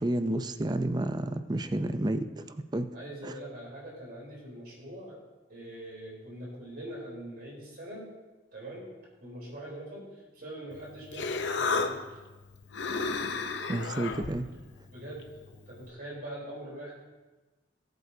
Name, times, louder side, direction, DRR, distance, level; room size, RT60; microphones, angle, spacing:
voice 1, 0.0-2.4 2.7-2.9 3.2-3.3 13.7-14.5, right 1 dB, 25° right, 9 dB, 0.5 m, -30 dB
voice 2, 2.9-5.2 5.5-8.1 8.5-8.9 9.2-12.1 14.9-17.0, right 1 dB, 55° right, -5 dB, 4.0 m, -43 dB
Human voice, 10.7-15.9, left 4 dB, 85° left, 0.8 m, -34 dB
19.0 x 8.0 x 2.8 m, 1.2 s
head